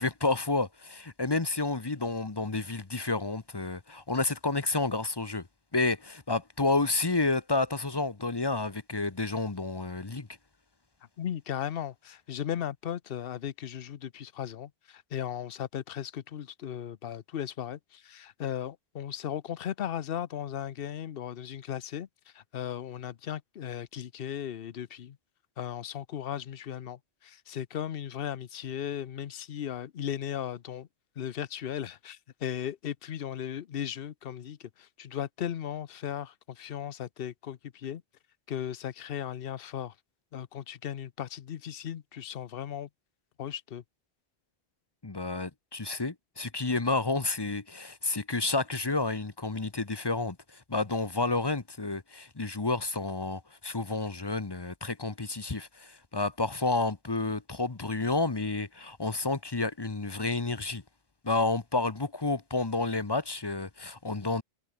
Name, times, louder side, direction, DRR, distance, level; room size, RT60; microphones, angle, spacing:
voice 1, 0.0-5.5 5.7-10.3 45.0-60.8 61.2-64.4, left 3 dB, 25° left, 1.0 m, -30 dB
voice 2, 11.2-22.1 22.3-25.2 25.6-30.9 31.2-38.0 38.5-39.9 40.3-42.9 43.4-43.8, left 9 dB, 65° left, 0.9 m, -36 dB
omnidirectional pair, 1.1 m